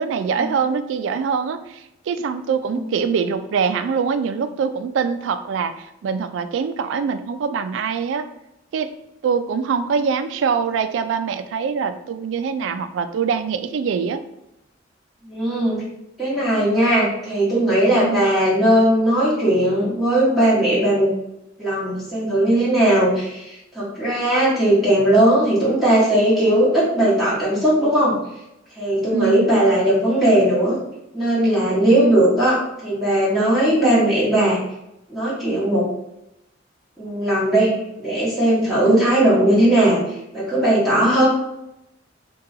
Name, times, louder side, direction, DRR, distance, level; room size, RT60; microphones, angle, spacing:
voice 1, 0.0-8.3 8.7-8.9 9.2-14.2 17.9-18.3 29.1-29.5 31.9-32.3 38.9-39.1, right 6 dB, 75° right, 11 dB, 0.3 m, -24 dB
voice 2, 15.2-15.8 16.2-21.1 21.6-28.2 28.8-30.8 31.1-32.6 32.8-34.6 35.1-35.8 37.0-40.0 40.3-41.3, right 1 dB, ahead, -10 dB, 1.1 m, -18 dB
2.8 x 2.3 x 3.7 m, 0.85 s
head